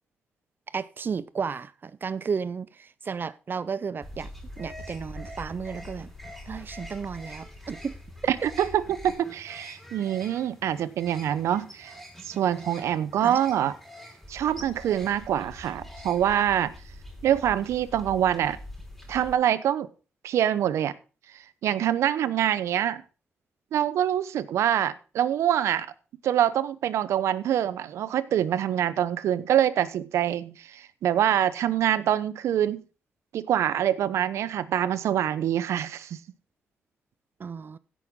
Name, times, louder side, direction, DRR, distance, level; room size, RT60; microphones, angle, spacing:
voice 1, 0.7-4.3 4.6-6.1 6.5-7.9 13.2-13.4 37.4-37.8, right 5 dB, 45° right, 0.5 m, -33 dB
sound 1, 4.0-19.3, left 1 dB, ahead, 4.7 m, -44 dB
voice 2, 8.3-11.9 12.2-13.7 14.3-16.7 17.2-18.6 19.1-19.9 20.2-20.9 21.6-23.0 23.7-25.9 26.2-32.8 33.3-36.2, right 10 dB, 80° right, 0.7 m, -25 dB
16.0 x 6.3 x 3.7 m
cardioid pair, 65°, 5 cm